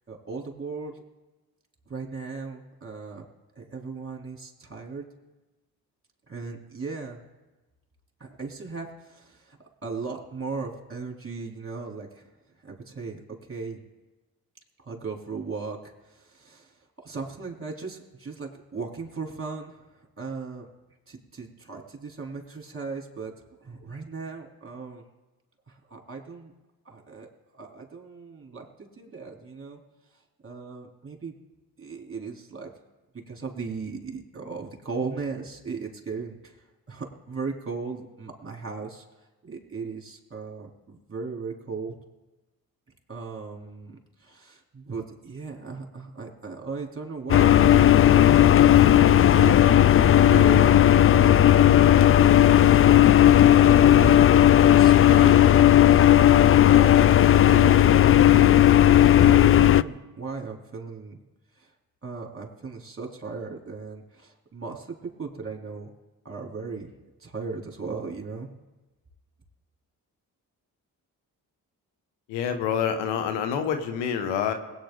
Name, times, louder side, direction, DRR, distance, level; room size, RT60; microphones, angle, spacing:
voice 1, 0.1-0.9 1.9-3.3 3.6-5.0 6.3-7.2 8.2-12.3 12.6-13.8 14.8-16.7 17.0-19.8 20.2-20.7 21.1-23.3 23.6-25.0 25.7-26.5 26.9-27.3 27.5-29.8 30.4-31.3 31.8-32.7 33.3-36.5 36.9-39.0 39.4-41.9 43.1-49.6 49.9-52.1 53.6-55.5 56.7-61.2 61.6-61.7 62.0-65.9 66.2-66.9 67.2-68.5, right 4 dB, 30° right, 1 dB, 3.5 m, -37 dB
sound 1, 47.3-59.8, left 11 dB, 35° left, 0.4 m, -15 dB
voice 2, 72.3-74.5, left 8 dB, 85° left, 7 dB, 1.1 m, -27 dB
22.0 x 9.1 x 3.9 m, 1.1 s
hypercardioid pair, 40°, 42 cm